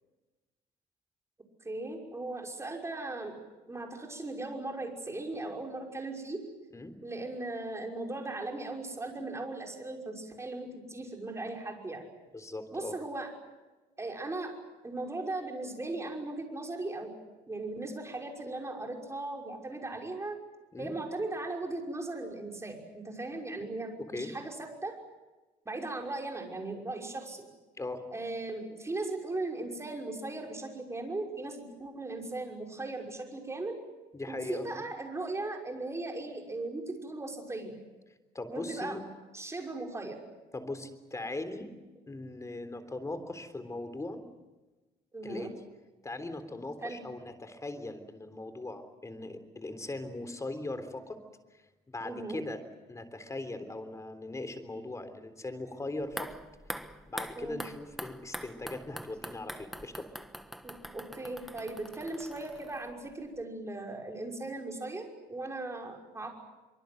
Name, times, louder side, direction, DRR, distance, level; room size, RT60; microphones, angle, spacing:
voice 1, 1.6-3.4 3.7-6.4 7.0-12.0 12.7-13.3 14.0-14.5 14.8-17.2 17.5-20.4 20.8-25.0 25.7-27.5 28.1-33.8 34.3-37.8 38.5-39.0 39.3-40.2 45.1-45.5 46.8-47.0 52.0-52.4 57.4-57.6 60.6-66.3, right 2 dB, 15° right, 1 dB, 5.8 m, -38 dB
voice 2, 12.3-12.9 20.7-20.9 24.0-24.3 27.8-28.0 34.1-34.8 38.3-39.0 40.5-41.7 42.1-44.2 45.2-45.5 46.0-51.2 51.9-52.6 52.9-56.3 57.1-60.1, left 2 dB, 20° left, 10 dB, 3.6 m, -39 dB
sound 1, 56.0-63.1 63.4-63.5, equal, ahead, 1.3 m, -44 dB
24.5 x 24.5 x 7.9 m, 1.2 s
cardioid pair, 110°, 17 cm